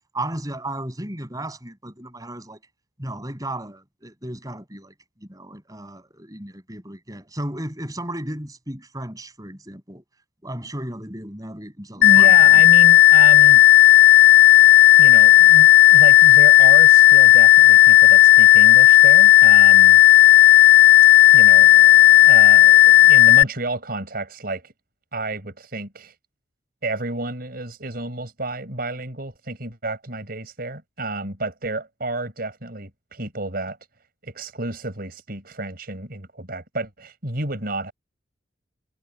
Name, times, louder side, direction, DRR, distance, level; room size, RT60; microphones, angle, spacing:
voice 1, 0.1-2.6 3.0-10.0 10.4-12.6, right 1 dB, 20° right, 7.9 m, -34 dB
sound 1, 12.0-23.4, left 15 dB, 70° left, 2.3 m, -11 dB
voice 2, 12.0-13.6 15.0-20.0 21.3-24.7 25.1-26.1 26.8-33.8 34.2-37.9, right 2 dB, 50° right, 5.6 m, -30 dB
head